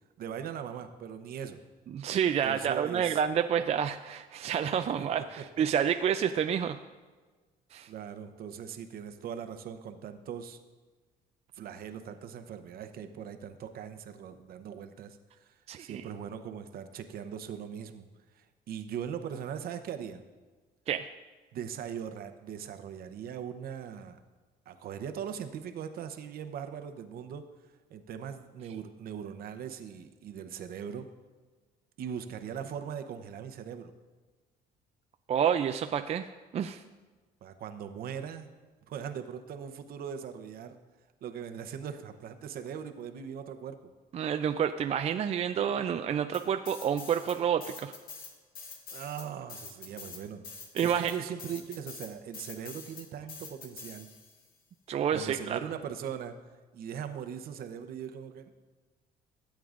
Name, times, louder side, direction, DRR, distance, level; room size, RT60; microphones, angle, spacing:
voice 1, 0.2-1.6 2.4-3.2 5.0-5.6 7.9-10.6 11.5-18.1 18.3-20.2 21.5-24.2 24.7-27.5 27.9-31.1 32.0-33.9 37.4-38.5 38.9-40.8 41.2-43.8 48.9-50.4 50.8-54.1 55.1-56.3 56.7-58.5, right 8 dB, 60° right, 8 dB, 0.8 m, -40 dB
voice 2, 1.9-6.8 7.7-7.9 15.7-16.0 20.9-21.1 35.3-36.3 36.5-36.8 44.1-47.9 50.8-51.1 54.9-55.6, right 8 dB, 40° right, 7 dB, 0.4 m, -29 dB
sound 1, 46.3-47.4 47.6-54.4, left 5 dB, 60° left, 1.8 m, -45 dB
16.0 x 8.5 x 2.5 m, 1.3 s
cardioid pair, 110°, 17 cm